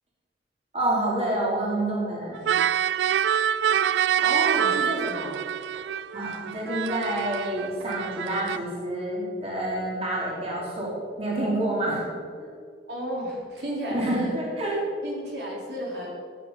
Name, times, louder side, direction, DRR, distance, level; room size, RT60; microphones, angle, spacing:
voice 1, 0.7-2.5 6.1-10.9 11.2-12.0 12.4-12.5 13.9-14.7, right 1 dB, 35° right, -5 dB, 3.2 m, -28 dB
sound 1, 2.4-8.6, right 9 dB, 85° right, 0.3 m, -26 dB
voice 2, 4.2-5.4 12.9-14.3 15.0-16.1, right 1 dB, 70° right, -3 dB, 3.8 m, -32 dB
15.0 x 9.4 x 5.7 m, 2.3 s
head